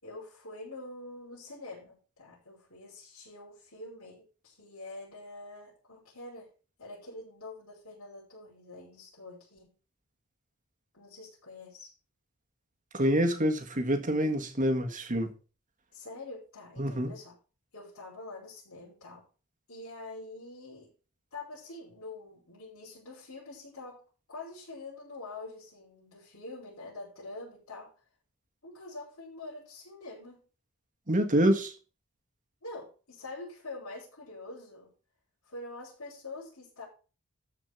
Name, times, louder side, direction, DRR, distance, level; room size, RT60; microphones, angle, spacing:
voice 1, 0.0-6.5 6.8-9.7 10.9-11.9 15.9-17.4 17.7-19.3 19.7-20.9 21.3-24.0 24.3-27.9 28.6-30.4 32.6-34.9 35.4-36.9, left 2 dB, 65° left, 6.0 m, -45 dB
voice 2, 12.9-15.3 16.8-17.1 31.1-31.7, equal, 35° right, 1.7 m, -26 dB
13.5 x 5.1 x 6.3 m
head